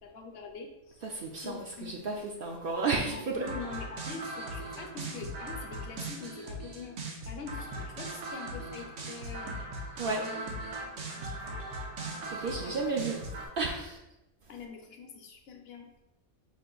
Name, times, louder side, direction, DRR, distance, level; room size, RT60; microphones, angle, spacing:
voice 1, 0.0-1.1 1.4-2.3 3.1-9.5 10.1-10.6 12.4-13.1 14.5-15.9, left 5 dB, 60° left, 3 dB, 0.9 m, -44 dB
voice 2, 1.0-3.4 10.0-10.2 12.3-13.2 13.6-14.0, right 3 dB, 60° right, 1 dB, 0.6 m, -32 dB
sound 1, 3.4-13.5, right 2 dB, 80° right, 1.1 m, -39 dB
5.3 x 2.5 x 3.7 m, 0.94 s
omnidirectional pair, 1.2 m